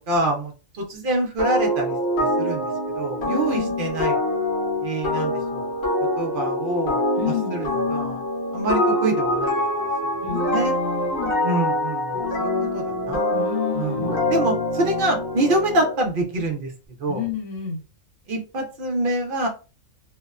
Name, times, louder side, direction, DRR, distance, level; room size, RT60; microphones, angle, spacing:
voice 1, 0.0-2.7 3.0-4.1 4.8-5.7 6.2-7.1 7.5-7.7 7.9-8.2 8.5-9.5 10.5-10.7 11.4-13.2 13.8-14.0 14.3-16.7 17.0-17.2 18.3-19.5, right 2 dB, 55° right, 3 dB, 0.7 m, -25 dB
sound 1, 1.4-16.0, left 1 dB, 50° left, 0.9 m, -25 dB
voice 2, 3.3-3.7 7.2-7.6 10.2-11.4 13.3-14.2 17.1-17.8, left 9 dB, 85° left, 0 dB, 1.2 m, -30 dB
2.8 x 2.0 x 2.3 m, 0.32 s
omnidirectional pair, 1.4 m